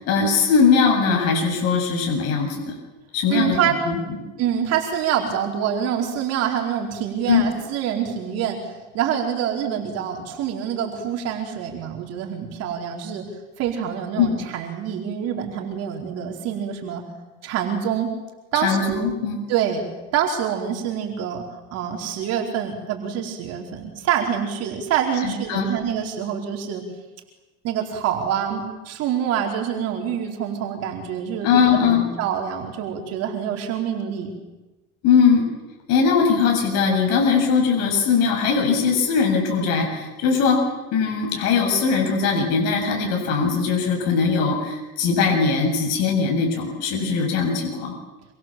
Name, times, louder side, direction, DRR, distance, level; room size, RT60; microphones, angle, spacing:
voice 1, 0.0-2.7 3.1-4.2 7.3-7.5 14.2-14.3 18.6-19.4 25.2-25.7 31.4-32.0 35.0-35.5 35.9-40.6 40.9-47.9, left 5 dB, 60° left, 1 dB, 7.6 m, -20 dB
voice 2, 3.3-3.8 4.4-13.2 13.6-17.0 17.4-18.1 18.5-19.1 19.5-19.8 20.1-21.4 21.7-26.8 27.6-34.3, right 9 dB, 55° right, 1 dB, 4.5 m, -26 dB
27.0 x 25.0 x 7.7 m, 1.1 s
supercardioid pair, 125°, 30 cm